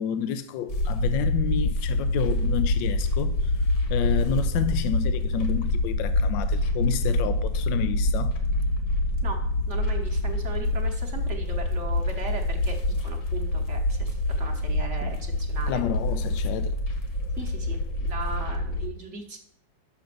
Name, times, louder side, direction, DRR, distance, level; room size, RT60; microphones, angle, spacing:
voice 1, 0.0-3.4 3.9-8.3 15.0-15.1 15.7-16.7, left 9 dB, 85° left, 1.3 m, -30 dB
sound 1, 0.7-18.9, left 1 dB, 55° left, 1.7 m, -26 dB
voice 2, 9.7-15.8 17.4-17.8 18.1-19.4, right 4 dB, 45° right, 1.2 m, -38 dB
6.4 x 5.9 x 6.6 m
omnidirectional pair, 2.0 m